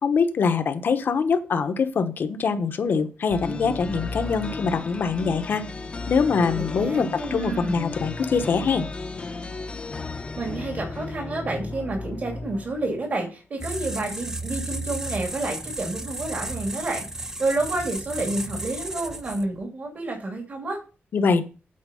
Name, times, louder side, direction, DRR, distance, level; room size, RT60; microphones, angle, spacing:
voice 1, 0.0-5.7 6.1-8.9 21.1-21.4, left 5 dB, 60° left, 8 dB, 1.0 m, -23 dB
sound 1, 3.3-13.1, left 3 dB, 30° left, 0.8 m, -34 dB
voice 2, 6.5-7.8 10.4-20.8, right 2 dB, 45° right, 1 dB, 2.6 m, -29 dB
sound 2, 13.6-19.6, right 2 dB, 15° right, 0.5 m, -33 dB
8.7 x 4.7 x 6.9 m, 0.35 s
wide cardioid pair, 135°, 4 cm